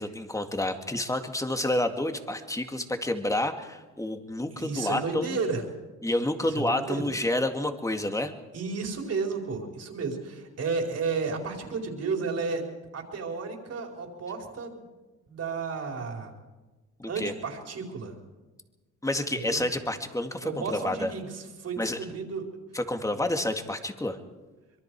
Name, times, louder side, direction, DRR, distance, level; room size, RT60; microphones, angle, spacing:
voice 1, 0.0-5.4 6.0-8.3 17.0-17.3 19.0-21.1 21.8-22.0 22.7-24.2, left 1 dB, 10° left, 6 dB, 2.1 m, -29 dB
voice 2, 4.5-5.6 6.5-7.0 8.5-12.6 12.9-14.8 15.3-16.3 17.1-18.1 19.3-19.6 20.4-22.5 23.0-23.1, right 4 dB, 55° right, 2 dB, 4.4 m, -32 dB
25.0 x 22.5 x 4.8 m, 1.2 s
cardioid pair, 90°, 30 cm